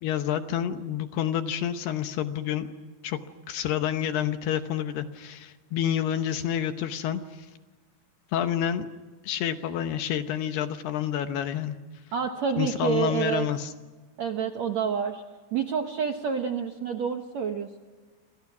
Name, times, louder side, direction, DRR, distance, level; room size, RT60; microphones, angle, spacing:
voice 1, 0.0-2.7 3.0-3.2 3.5-7.5 8.3-8.9 9.2-11.8 12.6-13.7, left 10 dB, 75° left, 8 dB, 2.8 m, -28 dB
voice 2, 12.1-13.5 14.2-15.2 15.5-17.8, right 7 dB, 80° right, 5 dB, 1.6 m, -28 dB
28.0 x 27.5 x 6.1 m, 1.3 s
omnidirectional pair, 5.1 m